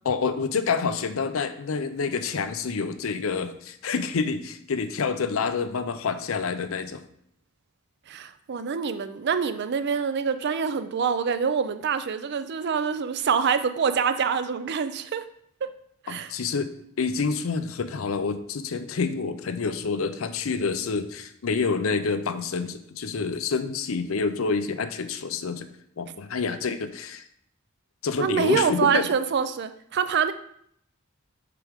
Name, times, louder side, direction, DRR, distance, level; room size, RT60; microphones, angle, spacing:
voice 1, 0.0-7.0 16.1-16.7 17.0-25.7 26.0-27.3 28.0-29.1, left 5 dB, 85° left, 10 dB, 0.5 m, -28 dB
voice 2, 8.1-15.2 15.6-15.7 16.0-16.3 28.2-30.3, right 6 dB, 55° right, 11 dB, 0.4 m, -25 dB
6.8 x 4.8 x 3.6 m, 0.68 s
head